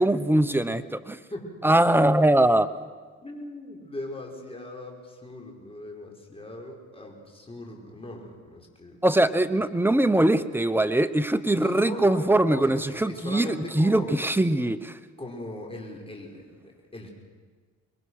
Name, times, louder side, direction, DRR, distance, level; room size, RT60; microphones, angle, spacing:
voice 1, 0.0-1.2 1.6-2.7 9.0-15.0, right 1 dB, 5° right, 11 dB, 1.0 m, -22 dB
voice 2, 3.2-9.0 11.5-14.2 15.2-17.1, left 1 dB, 20° left, 1 dB, 5.4 m, -39 dB
25.5 x 21.5 x 6.5 m, 1.5 s
cardioid pair, 90°, 30 cm